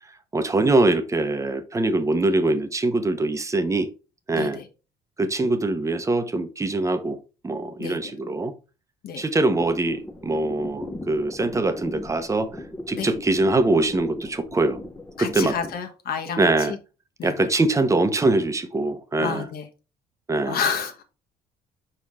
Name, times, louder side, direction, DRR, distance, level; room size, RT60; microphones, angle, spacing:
voice 1, 0.3-3.9 4.3-4.6 5.2-7.2 7.4-8.5 9.2-12.5 12.9-14.8 15.2-15.6 16.4-16.7 17.2-19.5 20.3-20.6, right 2 dB, 20° right, 0.9 m, -23 dB
voice 2, 4.3-4.6 7.8-8.1 9.0-9.2 12.9-13.1 15.2-16.8 17.2-17.5 19.2-19.7 20.4-21.0, left 7 dB, 65° left, 1.4 m, -30 dB
sound 1, 9.6-15.8, left 2 dB, 10° left, 0.9 m, -38 dB
5.8 x 4.7 x 3.6 m
cardioid pair, 110°, 17 cm